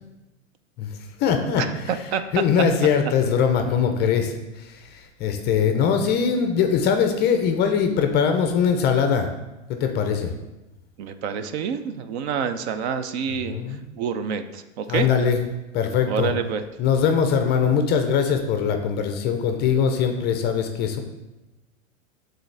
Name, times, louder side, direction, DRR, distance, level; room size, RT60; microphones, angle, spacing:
voice 1, 0.8-2.0 2.3-9.3 9.7-10.3 13.3-13.8 14.9-15.5 15.7-16.3 16.8-21.0, left 7 dB, 25° left, 5 dB, 0.4 m, -22 dB
voice 2, 1.6-2.2 11.0-13.6 13.9-15.1 16.1-16.6, right 7 dB, 55° right, 10 dB, 0.6 m, -27 dB
7.9 x 3.8 x 3.3 m, 1.0 s
hypercardioid pair, 120°, 39 cm